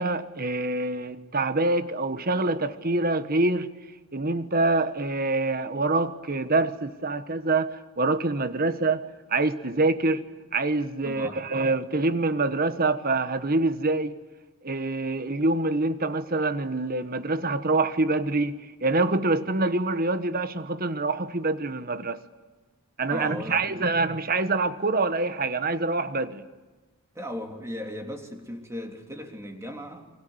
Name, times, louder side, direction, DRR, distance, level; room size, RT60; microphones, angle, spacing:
voice 1, 0.0-3.7 4.1-10.2 10.5-14.1 14.6-22.2 23.0-26.4, right 2 dB, 40° right, 1.4 m, -25 dB
voice 2, 11.0-11.4 23.1-23.8 27.1-30.1, equal, 15° right, 3.2 m, -37 dB
29.5 x 24.5 x 8.1 m
head